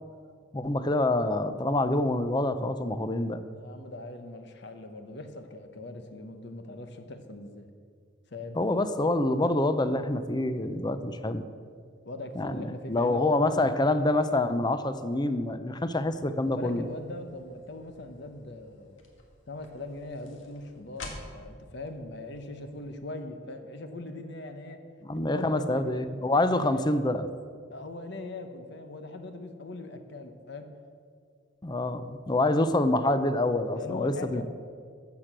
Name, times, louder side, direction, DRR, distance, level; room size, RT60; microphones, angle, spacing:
voice 1, 0.5-3.4 8.5-11.4 12.4-16.8 25.0-27.3 31.6-34.4, left 2 dB, 20° left, 11 dB, 0.6 m, -26 dB
voice 2, 3.5-7.7 8.3-8.6 12.0-13.3 16.4-19.0 19.5-24.8 25.1-26.0 26.6-26.8 27.7-30.7 33.7-34.4, left 2 dB, 65° left, 7 dB, 0.9 m, -40 dB
sound 1, 15.9-22.9, left 2 dB, 85° left, 1.7 m, -50 dB
13.0 x 7.6 x 6.1 m, 2.1 s
head